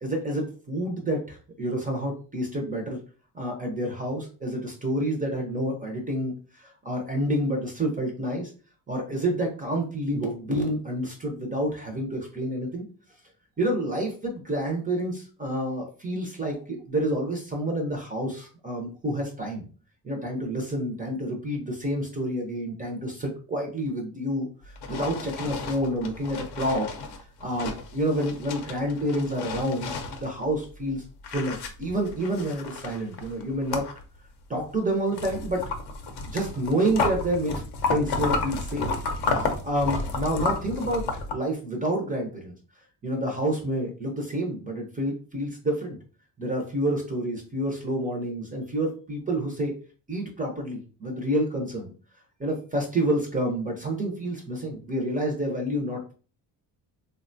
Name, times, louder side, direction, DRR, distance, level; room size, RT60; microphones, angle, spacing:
voice 1, 0.0-3.0 3.3-8.5 8.9-12.9 13.6-19.7 20.0-24.5 24.9-26.9 27.4-29.9 30.2-31.0 31.3-33.9 34.5-35.6 36.2-37.6 37.9-38.9 39.3-42.5 43.0-46.0 46.4-49.7 50.1-51.9 52.4-56.1, right 1 dB, 20° right, 1 dB, 0.4 m, -28 dB
sound 1, 24.6-30.9 31.2-34.2 34.6-41.3, left 3 dB, 60° left, 0.6 m, -32 dB
3.6 x 2.2 x 2.5 m, 0.38 s
cardioid pair, 170°, 44 cm